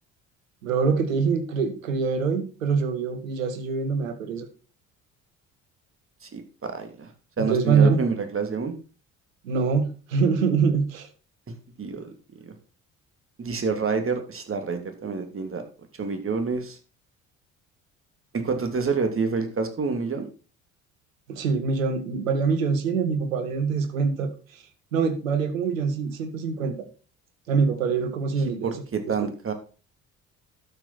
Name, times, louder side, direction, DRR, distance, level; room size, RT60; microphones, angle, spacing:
voice 1, 0.6-4.5 7.4-8.0 9.4-11.1 21.3-24.6 24.9-26.7 27.5-29.3, right 5 dB, 85° right, 9 dB, 1.6 m, -24 dB
voice 2, 6.2-7.1 7.4-8.7 11.8-12.1 12.4-12.5 13.4-15.6 16.0-16.8 18.3-20.3 28.6-29.5, right 5 dB, 35° right, 6 dB, 3.0 m, -28 dB
12.0 x 6.9 x 4.3 m, 0.35 s
hypercardioid pair, 55°, 39 cm